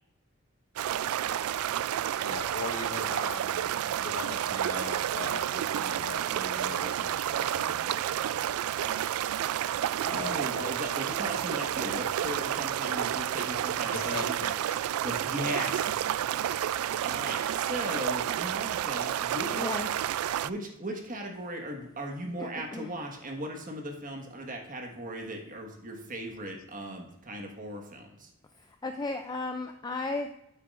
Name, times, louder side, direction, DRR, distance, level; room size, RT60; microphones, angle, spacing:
sound 1, 0.8-20.5, right 11 dB, 85° right, 0.3 m, -30 dB
voice 1, 2.2-7.9 10.1-10.7 13.9-15.0, left 3 dB, 65° left, 5 dB, 1.0 m, -40 dB
voice 2, 10.1-14.4 15.0-16.0 17.0-19.9 20.4-28.3, right 1 dB, 40° right, 2 dB, 1.4 m, -37 dB
voice 3, 19.5-19.9 22.4-23.0 28.5-30.4, left 3 dB, 20° left, 6 dB, 0.3 m, -35 dB
9.8 x 8.1 x 2.5 m, 0.85 s
head